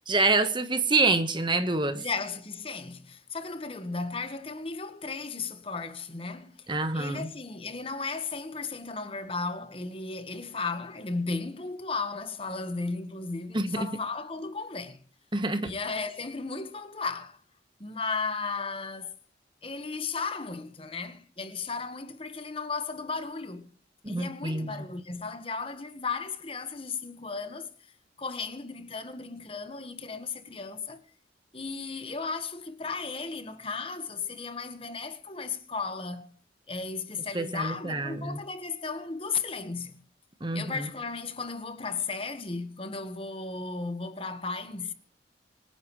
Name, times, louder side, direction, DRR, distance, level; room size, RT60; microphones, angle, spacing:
voice 1, 0.1-2.0 6.7-7.3 13.5-13.9 15.3-15.7 24.0-24.8 37.3-38.4 40.4-40.9, right 3 dB, 25° right, 1.3 m, -27 dB
voice 2, 1.9-6.7 6.9-15.0 15.6-17.4 17.8-19.1 19.6-23.7 24.1-27.7 28.2-31.0 31.5-36.3 36.7-40.0 40.5-44.9, left 4 dB, 30° left, 1.4 m, -35 dB
26.0 x 10.0 x 3.3 m
head